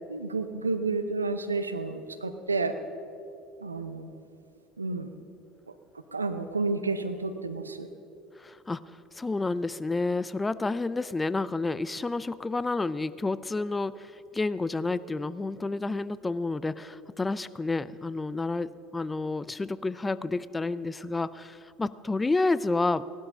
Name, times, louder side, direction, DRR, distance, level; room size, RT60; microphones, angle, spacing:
voice 1, 0.1-2.8 3.6-4.1 4.8-5.1 6.1-7.9, right 3 dB, 85° right, 10 dB, 0.7 m, -30 dB
voice 2, 8.4-8.8 9.1-23.0, left 3 dB, 15° left, 17 dB, 0.5 m, -30 dB
18.0 x 12.0 x 5.6 m, 2.6 s
figure-of-eight pair, 65°, 0 cm